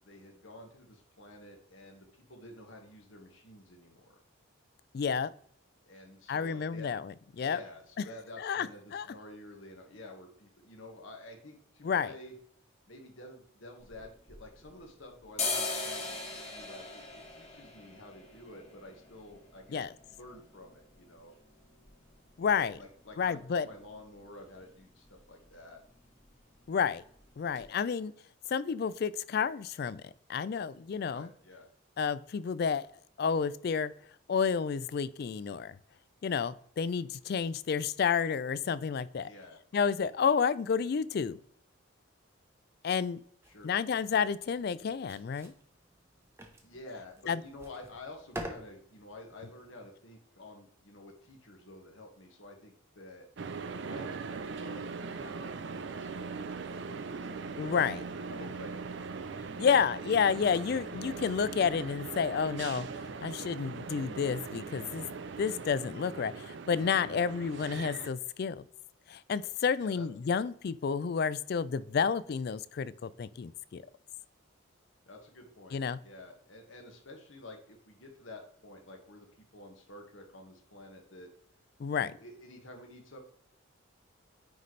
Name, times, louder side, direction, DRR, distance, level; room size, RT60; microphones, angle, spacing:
voice 1, 0.0-4.2 5.8-6.9 7.4-12.4 12.9-16.2 16.5-21.3 22.8-23.4 23.6-25.8 31.0-31.7 39.2-39.6 43.4-43.7 46.6-53.3 53.8-56.1 56.4-57.7 58.1-59.9 67.0-67.3 69.8-70.4 75.1-81.3 81.9-83.2, left 1 dB, 65° left, 2 dB, 1.5 m, -50 dB
voice 2, 4.9-5.3 6.3-7.6 8.4-8.7 8.9-9.1 11.8-12.1 19.7-19.9 22.4-22.8 23.2-23.7 26.7-27.0 27.4-28.1 28.5-30.0 30.3-31.3 32.0-32.9 33.2-33.9 34.3-35.7 36.2-39.3 39.7-41.4 42.8-43.2 43.6-45.5 47.3-47.4 57.6-58.0 59.6-62.9 63.2-65.0 65.4-68.6 69.1-73.8 75.7-76.0 81.8-82.1, left 6 dB, 50° left, 17 dB, 0.3 m, -30 dB
sound 1, 13.8-14.9 15.2-22.9 23.2-23.3 23.6-24.2 24.5-24.7 24.9-25.2 25.5-26.2 26.5-26.7 27.2-27.3 27.5-27.6, left 3 dB, 30° left, 1.7 m, -40 dB
sound 2, 43.4-49.8, right 1 dB, 10° right, 0.8 m, -48 dB
sound 3, 53.4-68.1, right 4 dB, 55° right, 0.5 m, -40 dB
9.2 x 4.1 x 3.2 m, 0.63 s
head